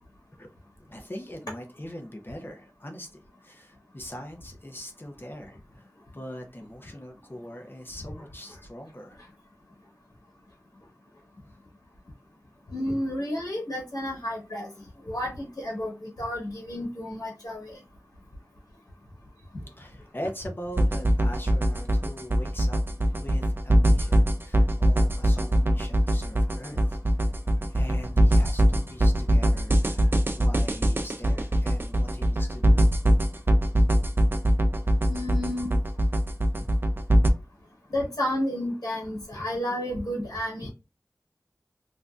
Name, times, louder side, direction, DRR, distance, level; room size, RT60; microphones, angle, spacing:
voice 1, 0.9-3.1 3.4-9.2 19.8-22.8 23.2-27.0 27.7-28.6 28.9-32.9, equal, 35° left, 3 dB, 0.6 m, -41 dB
voice 2, 12.7-14.7 15.1-17.8 35.1-35.7 37.9-40.7, left 1 dB, 85° left, -4 dB, 1.1 m, -31 dB
sound 1, 20.8-37.3, equal, 35° right, 0.4 m, -22 dB
3.1 x 2.6 x 2.3 m, 0.27 s
wide cardioid pair, 50°, 6 cm